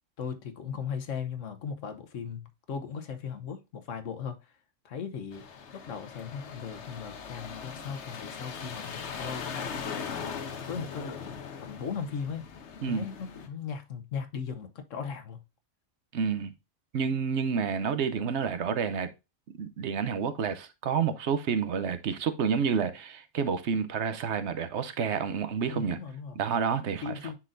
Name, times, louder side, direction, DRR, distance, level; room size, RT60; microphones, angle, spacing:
voice 1, 0.2-4.5 4.8-5.5 5.7-9.4 10.0-12.5 12.8-15.4 25.7-26.4 27.0-27.3, left 6 dB, 85° left, 1.3 m, -38 dB
sound 1, 5.3-13.5, left 6 dB, 70° left, 1.2 m, -40 dB
voice 2, 16.1-16.5 16.9-19.1 19.6-26.0 26.4-27.1, right 6 dB, 65° right, 1.0 m, -29 dB
9.9 x 4.0 x 2.5 m
omnidirectional pair, 1.3 m